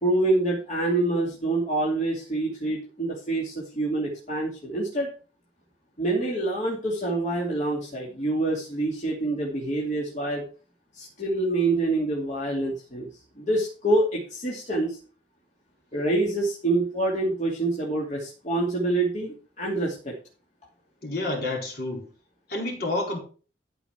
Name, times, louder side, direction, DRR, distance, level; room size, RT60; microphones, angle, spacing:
voice 1, 0.0-5.1 6.0-10.4 10.9-15.0 15.9-20.1, right 2 dB, 45° left, -3 dB, 2.7 m, -26 dB
voice 2, 21.0-22.1 22.5-23.2, left 2 dB, 60° left, 0 dB, 4.3 m, -29 dB
13.5 x 5.1 x 5.9 m, 0.38 s
head